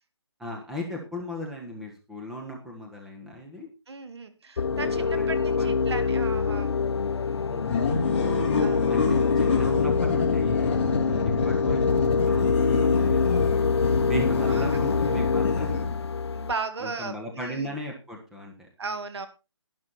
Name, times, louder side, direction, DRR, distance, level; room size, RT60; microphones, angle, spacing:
voice 1, 0.4-3.7 5.0-6.1 7.5-8.2 8.9-10.7 11.2-13.7 14.0-16.0 16.8-18.7, equal, 5° right, -1 dB, 1.3 m, -36 dB
voice 2, 3.9-6.8 8.6-9.1 14.4-15.0 16.3-17.1 17.4-17.7 18.8-19.3, right 4 dB, 65° right, 10 dB, 2.1 m, -36 dB
sound 1, 4.6-16.5, left 5 dB, 65° left, 0.7 m, -25 dB
sound 2, 7.6-16.2, left 4 dB, 25° left, 2.8 m, -28 dB
11.5 x 11.0 x 4.1 m, 0.29 s
hypercardioid pair, 165°, 15 cm